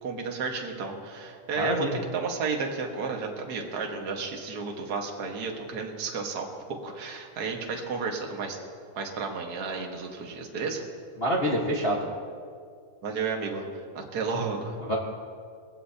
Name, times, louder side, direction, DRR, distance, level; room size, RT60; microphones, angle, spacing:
voice 1, 0.0-8.6 8.9-10.8 13.0-14.8, right 4 dB, 45° right, 1 dB, 1.3 m, -32 dB
voice 2, 1.6-1.9 11.2-12.0 14.8-15.0, equal, 85° left, -4 dB, 0.5 m, -26 dB
21.0 x 16.0 x 2.8 m, 2.2 s
omnidirectional pair, 3.6 m